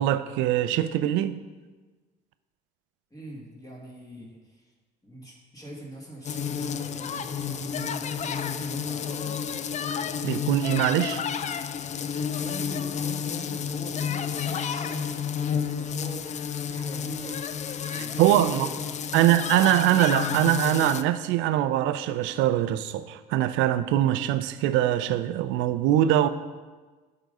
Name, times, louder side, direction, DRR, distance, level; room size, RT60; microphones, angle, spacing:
voice 1, 0.0-1.4 10.2-11.2 17.9-18.7 19.1-26.3, right 13 dB, 70° right, 0.5 m, -23 dB
voice 2, 3.1-4.6 5.0-9.4 12.2-17.4 17.8-19.2, right 1 dB, 15° left, 2.0 m, -42 dB
sound 1, 6.2-21.0, left 7 dB, 35° left, 0.4 m, -31 dB
9.1 x 3.9 x 5.4 m
hypercardioid pair, 65°, 21 cm